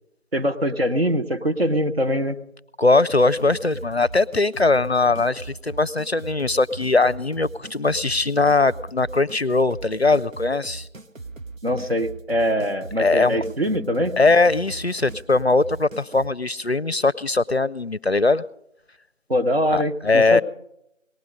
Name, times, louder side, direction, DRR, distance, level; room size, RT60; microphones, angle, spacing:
voice 1, 0.3-2.4 11.6-14.2 19.3-20.4, equal, 50° right, 6 dB, 1.2 m, -23 dB
voice 2, 2.8-10.9 13.0-13.4 14.2-18.4 19.7-20.4, left 3 dB, 55° left, 19 dB, 0.5 m, -20 dB
sound 1, 3.1-16.3, right 3 dB, 85° right, 1.2 m, -39 dB
19.0 x 12.5 x 5.1 m, 0.80 s
figure-of-eight pair, 180°, 39 cm